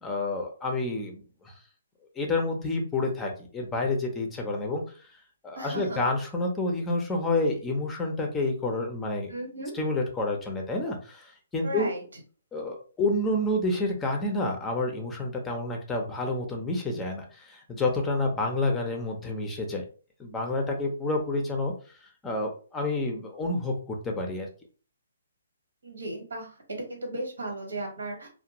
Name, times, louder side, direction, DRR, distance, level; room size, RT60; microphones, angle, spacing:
voice 1, 0.0-1.5 2.2-4.8 5.4-9.3 9.7-11.9 12.5-19.8 20.2-21.7 22.2-24.5, left 2 dB, 10° left, 2 dB, 0.5 m, -29 dB
voice 2, 5.6-6.0 9.3-9.7 11.6-12.0 25.8-28.3, right 1 dB, 85° right, 2 dB, 1.2 m, -35 dB
2.4 x 2.1 x 2.9 m, 0.39 s
hypercardioid pair, 150°, 0 cm